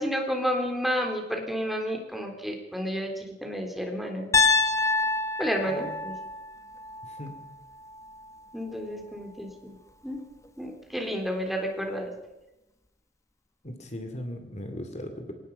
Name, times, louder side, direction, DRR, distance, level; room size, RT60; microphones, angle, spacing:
voice 1, 0.0-4.3 5.4-6.1 8.5-9.7 10.0-10.2 10.6-12.1, equal, ahead, 2 dB, 3.6 m, -31 dB
Piano, 4.3-8.4, left 4 dB, 15° left, 1.1 m, -27 dB
voice 2, 5.7-6.0 7.0-7.4 13.6-15.3, left 1 dB, 40° left, 7 dB, 2.6 m, -38 dB
24.5 x 19.0 x 5.5 m, 0.96 s
head